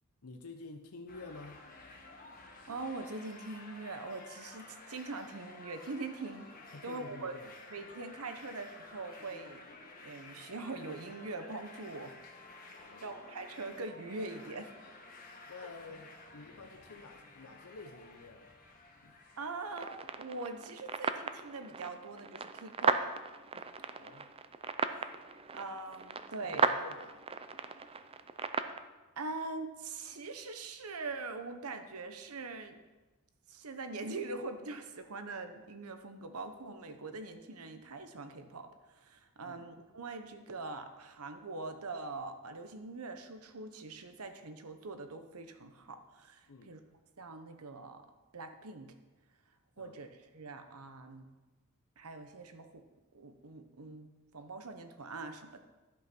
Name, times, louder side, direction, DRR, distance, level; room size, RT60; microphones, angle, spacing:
voice 1, 0.2-1.7 6.7-7.5 12.8-13.1 15.5-18.5 19.0-19.2 24.0-24.3 26.4-27.2 39.4-39.7 46.5-46.8 49.8-50.0, left 3 dB, 85° left, 5 dB, 0.8 m, -50 dB
sound 1, 1.1-20.2, left 3 dB, 40° left, 1.5 m, -53 dB
voice 2, 2.7-6.5 6.8-7.4 7.7-9.6 10.0-12.2 12.8-14.7 15.6-15.7 19.4-23.1 23.5-23.6 24.8-25.2 25.5-26.8 29.2-32.8 33.5-46.8 47.2-48.9 49.8-51.3 52.0-52.9 53.1-55.6, right 3 dB, 80° right, 8 dB, 1.0 m, -43 dB
sound 2, 19.7-28.8, right 4 dB, 25° right, 0.5 m, -36 dB
11.5 x 5.7 x 6.0 m, 1.2 s
head